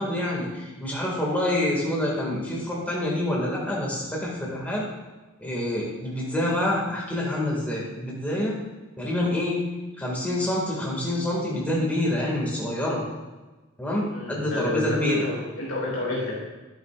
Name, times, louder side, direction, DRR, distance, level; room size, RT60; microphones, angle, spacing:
voice 1, 0.0-4.9 5.4-8.6 9.0-9.6 10.0-13.1 13.8-15.2, left 1 dB, 5° left, -4 dB, 2.1 m, -27 dB
voice 2, 14.1-16.4, left 2 dB, 65° left, -5 dB, 2.4 m, -29 dB
11.5 x 8.0 x 2.5 m, 1.2 s
head